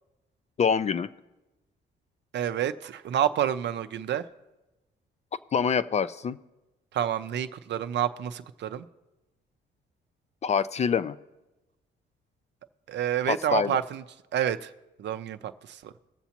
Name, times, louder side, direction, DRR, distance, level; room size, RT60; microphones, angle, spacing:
voice 1, 0.6-1.1 5.5-6.4 10.4-11.2 13.3-13.8, left 6 dB, 35° left, 15 dB, 0.4 m, -25 dB
voice 2, 2.3-4.3 6.9-8.8 12.9-14.0 14.3-14.7 15.0-15.9, right 10 dB, 65° right, 11 dB, 0.5 m, -29 dB
20.0 x 7.1 x 2.9 m, 1.0 s
cardioid pair, 90°, 20 cm